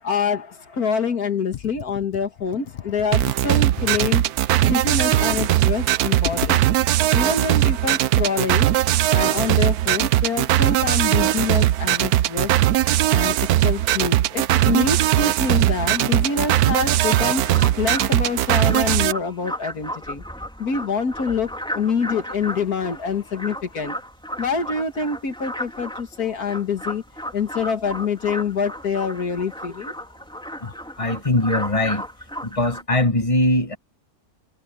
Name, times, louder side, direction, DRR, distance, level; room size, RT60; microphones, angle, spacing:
voice 1, 0.0-4.3 4.6-6.6 7.1-8.7 9.1-12.5 13.1-20.2 20.6-24.0 24.4-27.0 27.3-29.9, left 5 dB, 75° left, 2.5 m, -26 dB
Computer keyboard, 1.5-4.3 4.9-5.6 5.9-6.0 6.2-6.6, left 10 dB, 60° left, 0.6 m, -34 dB
sound 1, 3.1-19.1, right 13 dB, 80° right, 1.2 m, -19 dB
sound 2, 17.1-32.8, equal, 5° left, 3.1 m, -35 dB
voice 2, 30.6-32.1 32.4-33.8, left 2 dB, 20° left, 1.8 m, -21 dB
omnidirectional pair, 1.6 m